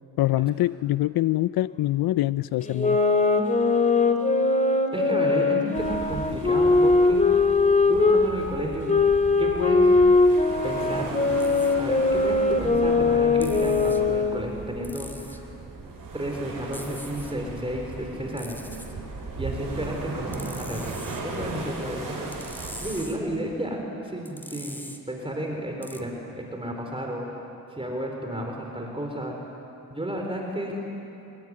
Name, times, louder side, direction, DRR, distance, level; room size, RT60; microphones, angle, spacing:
voice 1, 0.2-3.0, left 15 dB, 80° left, 16 dB, 0.5 m, -24 dB
sound 1, 2.6-8.3 8.9-14.5, left 3 dB, 20° left, 2.5 m, -21 dB
voice 2, 4.9-7.3 7.9-8.9 9.4-10.0 10.6-11.1 11.8-15.4 16.1-18.6 19.4-20.9 21.2-22.3 22.8-27.3 27.7-29.4 29.9-30.9, right 1 dB, 15° right, 1 dB, 4.1 m, -32 dB
sound 2, 5.7-23.0, right 3 dB, 65° right, 6.3 m, -37 dB
sound 3, 11.4-11.8 13.4-14.0 14.8-15.4 16.7-17.3 18.4-18.9 20.3-21.2 22.3-23.2 24.2-25.0 25.8-26.0, equal, 5° left, 2.7 m, -42 dB
25.5 x 22.5 x 9.8 m, 2.9 s
cardioid pair, 85°, 37 cm